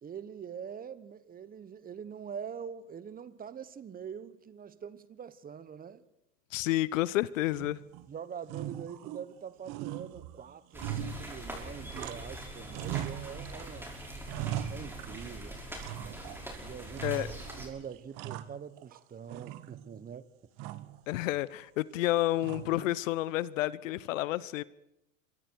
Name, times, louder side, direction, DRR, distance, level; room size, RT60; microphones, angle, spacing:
voice 1, 0.0-6.0 8.1-13.9 14.7-15.6 16.6-20.3 20.6-20.7, right 7 dB, 20° right, 1.1 m, -44 dB
voice 2, 6.5-7.8 17.0-17.3 21.1-24.6, left 16 dB, 75° left, 0.9 m, -30 dB
sound 1, 7.5-8.1 8.4-9.4 9.6-12.4 12.7-13.7 14.0-15.4 15.8-16.5 16.9-17.6 17.9-19.0 19.3-20.0 20.6-21.0 22.4-22.9, right 11 dB, 55° right, 1.4 m, -40 dB
sound 2, 10.7-17.7, right 1 dB, 5° right, 5.6 m, -43 dB
27.5 x 24.0 x 4.7 m
supercardioid pair, 110°, 39 cm